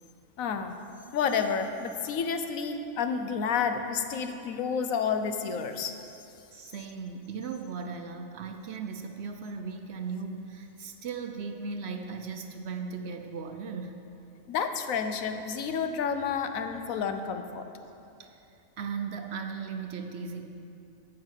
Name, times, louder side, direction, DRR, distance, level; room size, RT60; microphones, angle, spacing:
voice 1, 0.4-0.8 1.1-5.9 14.5-17.7, left 6 dB, 85° left, 7 dB, 1.1 m, -30 dB
voice 2, 6.5-14.0 18.2-18.4 18.8-20.5, right 5 dB, 60° right, 6 dB, 0.8 m, -37 dB
9.3 x 5.6 x 8.1 m, 2.7 s
omnidirectional pair, 1.4 m